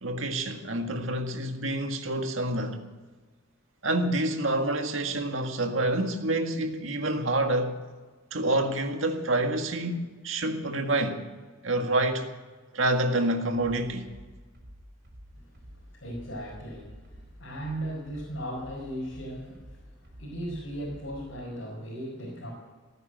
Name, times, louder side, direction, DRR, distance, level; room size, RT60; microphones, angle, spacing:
voice 1, 0.0-2.8 3.8-7.8 8.3-11.2 11.6-12.3 12.7-14.1, right 1 dB, 90° right, 1.8 m, -27 dB
sound 1, 14.0-21.4, equal, 55° right, 4.6 m, -49 dB
voice 2, 15.3-22.5, right 1 dB, 80° left, 5.0 m, -37 dB
17.5 x 10.0 x 7.9 m
head